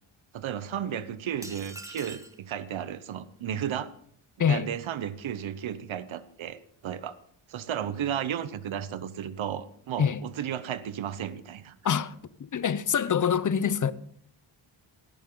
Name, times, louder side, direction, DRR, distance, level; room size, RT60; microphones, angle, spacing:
voice 1, 0.3-3.9 4.5-7.1 7.5-11.8, right 9 dB, 65° right, 1.1 m, -34 dB
sound 1, 1.4-2.4, right 1 dB, 5° right, 1.4 m, -43 dB
voice 2, 11.8-13.9, left 7 dB, 40° left, 0.8 m, -25 dB
17.5 x 11.5 x 3.9 m
cardioid pair, 95°, 50 cm